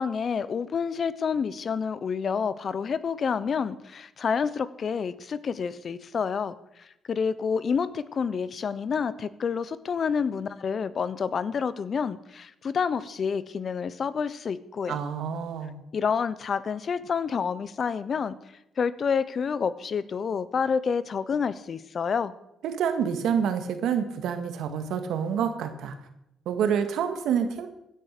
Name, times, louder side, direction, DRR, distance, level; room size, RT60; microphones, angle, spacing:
voice 1, 0.0-15.0 15.9-18.4 18.8-22.3, left 6 dB, 50° left, 16 dB, 0.9 m, -28 dB
voice 2, 14.9-15.7 22.6-25.9 26.5-27.7, right 7 dB, 80° right, 8 dB, 1.9 m, -27 dB
16.5 x 10.0 x 6.8 m, 0.83 s
cardioid pair, 90°, 0 cm